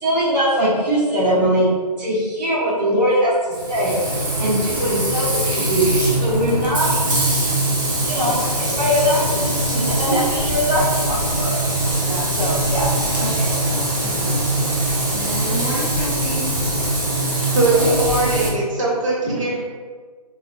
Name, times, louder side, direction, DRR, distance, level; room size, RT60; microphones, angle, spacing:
voice 1, 0.0-1.7 2.0-4.0 4.4-5.9 6.1-6.9 8.1-11.5 12.4-13.5, equal, 85° right, -7 dB, 1.4 m, -21 dB
Frying (food), 3.5-18.5, right 1 dB, 30° right, 0.5 m, -22 dB
voice 2, 14.0-14.4 15.1-16.6, right 1 dB, 20° left, -9 dB, 0.5 m, -30 dB
voice 3, 17.5-19.6, right 2 dB, 50° right, -5 dB, 0.9 m, -20 dB
3.0 x 2.5 x 2.2 m, 1.5 s
hypercardioid pair, 160°, 21 cm